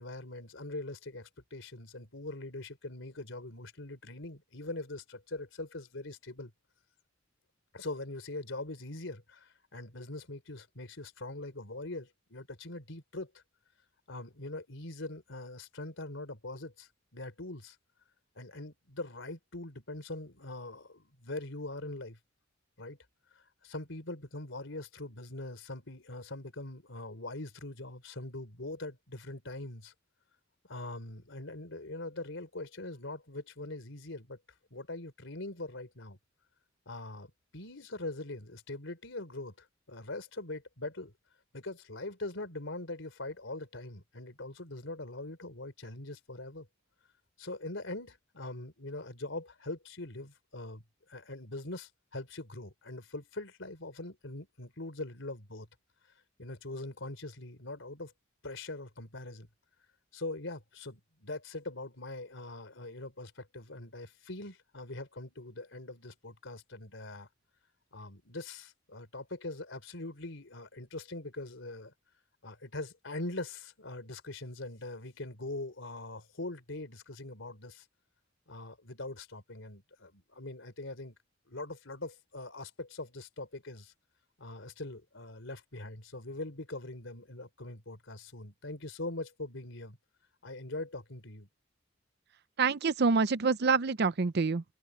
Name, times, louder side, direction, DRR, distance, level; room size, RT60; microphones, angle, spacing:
voice 1, 0.0-6.5 7.7-13.3 14.1-17.8 18.4-22.2 22.8-23.0 23.4-29.9 30.7-34.4 34.7-36.2 36.9-41.1 41.5-46.7 47.4-50.8 51.1-55.7 56.4-58.1 58.4-59.5 60.1-67.3 67.9-71.9 72.4-77.9 78.5-81.2 81.5-83.9 84.4-90.0 90.4-91.5, left 2 dB, 75° left, 3.7 m, -42 dB
voice 2, 92.6-94.6, right 4 dB, 55° right, 0.6 m, -26 dB
open air
head